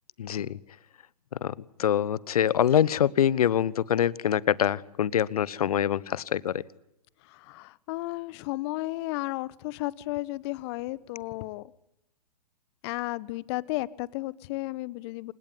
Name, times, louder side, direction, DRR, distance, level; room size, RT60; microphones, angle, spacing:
voice 1, 0.2-0.6 1.4-1.5 1.8-6.6, left 10 dB, 65° left, 22 dB, 1.1 m, -25 dB
voice 2, 7.2-11.7 12.8-15.3, left 20 dB, 40° left, 21 dB, 1.1 m, -33 dB
28.0 x 17.5 x 9.9 m, 0.82 s
figure-of-eight pair, 110°, 20 cm